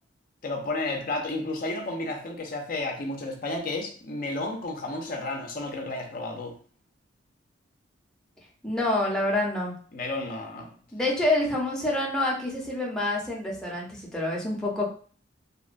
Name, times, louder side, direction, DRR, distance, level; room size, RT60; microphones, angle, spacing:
voice 1, 0.4-6.5 9.9-10.7, left 2 dB, 50° left, 2 dB, 0.5 m, -32 dB
voice 2, 8.6-9.7 10.9-14.9, left 1 dB, 5° left, -4 dB, 0.6 m, -27 dB
2.8 x 2.1 x 2.4 m, 0.43 s
head